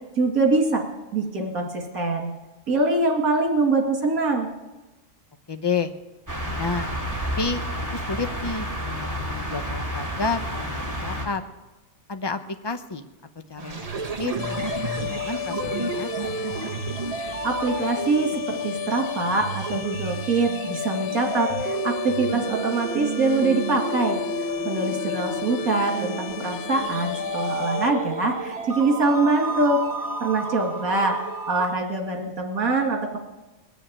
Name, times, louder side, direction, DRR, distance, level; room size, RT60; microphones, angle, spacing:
voice 1, 0.2-0.8 1.1-2.3 2.7-4.5 17.4-24.2 24.6-29.8 30.2-31.2 31.5-33.2, right 3 dB, 65° right, 2 dB, 2.7 m, -24 dB
voice 2, 5.5-5.9 6.6-6.9 7.4-7.6 7.9-11.4 12.1-13.0 13.5-13.9 14.2-14.3 14.6-16.3 24.6-25.1, left 4 dB, 45° left, 8 dB, 0.3 m, -30 dB
sound 1, 6.3-11.3, equal, 10° right, 2.3 m, -30 dB
sound 2, 13.6-31.7, right 4 dB, 30° right, 1.0 m, -32 dB
sound 3, 14.4-27.9, left 12 dB, 85° left, 1.2 m, -33 dB
20.5 x 7.1 x 8.8 m, 1.1 s
omnidirectional pair, 1.6 m